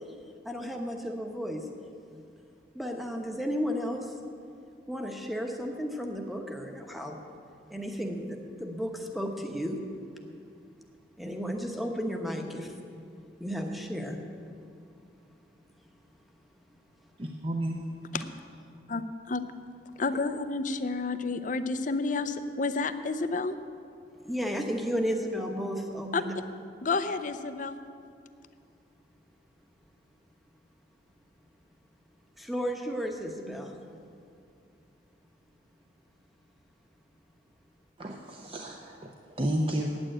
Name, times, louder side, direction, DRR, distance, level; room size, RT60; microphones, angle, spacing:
voice 1, 0.4-1.7 2.7-4.1 4.9-7.3 7.7-9.8 11.2-12.7 13.4-14.2 24.2-26.3 32.4-33.7, equal, ahead, 3 dB, 1.0 m, -33 dB
voice 2, 17.2-17.8 38.0-39.1 39.4-39.9, right 1 dB, 30° right, 1 dB, 0.7 m, -31 dB
voice 3, 20.0-23.6 26.1-26.2 26.8-27.8, left 3 dB, 45° left, 10 dB, 0.5 m, -30 dB
8.9 x 8.9 x 8.9 m, 2.5 s
head